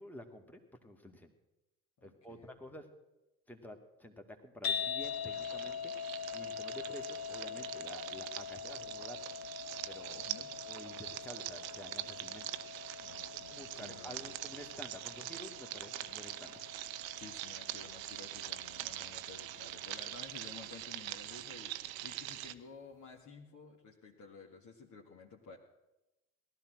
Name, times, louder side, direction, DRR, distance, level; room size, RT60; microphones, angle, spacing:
voice 1, 0.0-1.3 2.0-2.9 3.5-5.9 6.3-9.2 9.9-12.5 13.5-16.5, left 1 dB, 5° left, 4 dB, 2.1 m, -50 dB
voice 2, 2.0-2.6 10.2-10.5 13.0-14.4 17.2-25.6, left 5 dB, 45° left, -1 dB, 2.1 m, -53 dB
sound 1, 4.6-20.9, left 7 dB, 85° left, 1.3 m, -44 dB
sound 2, 5.0-22.5, right 15 dB, 75° right, 0.7 m, -44 dB
18.0 x 12.5 x 6.3 m, 0.99 s
hypercardioid pair, 60°, 42 cm